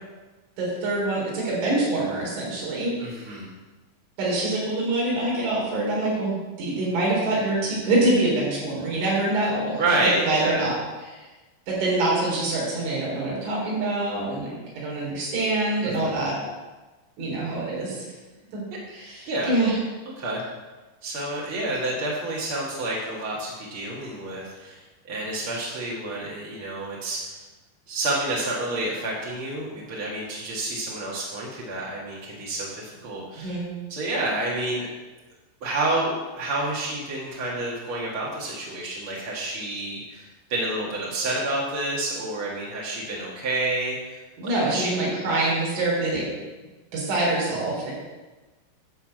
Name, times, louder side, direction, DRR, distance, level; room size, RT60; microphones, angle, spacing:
voice 1, 0.6-3.3 4.2-10.7 11.1-11.3 11.7-16.4 17.2-18.1 18.5-18.6 18.9-19.8 33.4-33.7 44.4-46.3 46.9-47.9, right 2 dB, 80° right, -5 dB, 6.4 m, -25 dB
voice 2, 3.0-3.5 9.7-10.6 15.8-16.2 19.3-19.5 20.2-20.4 21.0-24.8 25.1-27.4 27.9-33.5 33.9-34.9 35.6-45.1, right 2 dB, 55° right, -5 dB, 1.5 m, -29 dB
12.5 x 4.7 x 7.7 m, 1.2 s
omnidirectional pair, 5.4 m